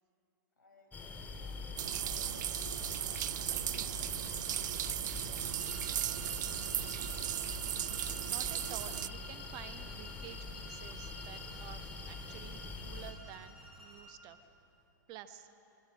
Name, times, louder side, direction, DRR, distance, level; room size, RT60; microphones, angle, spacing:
voice 1, 0.6-2.7 3.2-6.7, left 2 dB, 80° left, 1 dB, 6.4 m, -62 dB
sound 1, 0.9-13.1, left 3 dB, 15° left, 2.5 m, -45 dB
sound 2, 1.8-9.1, right 12 dB, 65° right, 0.4 m, -36 dB
sound 3, 5.5-14.2, equal, ahead, 5.7 m, -52 dB
voice 2, 8.0-14.5 15.1-15.5, right 10 dB, 40° right, 10 dB, 1.2 m, -51 dB
25.0 x 23.5 x 6.4 m, 2.9 s
hypercardioid pair, 115°, 11 cm